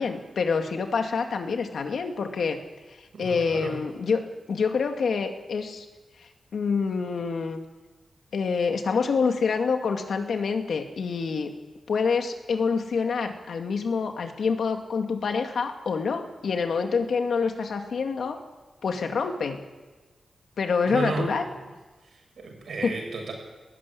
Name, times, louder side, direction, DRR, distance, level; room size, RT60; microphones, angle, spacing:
voice 1, 0.0-2.6 3.0-5.9 6.2-7.6 8.3-11.5 11.9-18.4 18.8-19.6 20.6-21.5 22.8-22.9, left 5 dB, 80° left, 5 dB, 2.2 m, -27 dB
voice 2, 3.1-3.8 20.8-21.5 22.1-23.3, right 3 dB, 80° right, 1 dB, 6.9 m, -33 dB
19.5 x 14.5 x 9.9 m, 1.2 s
wide cardioid pair, 150°, 0 cm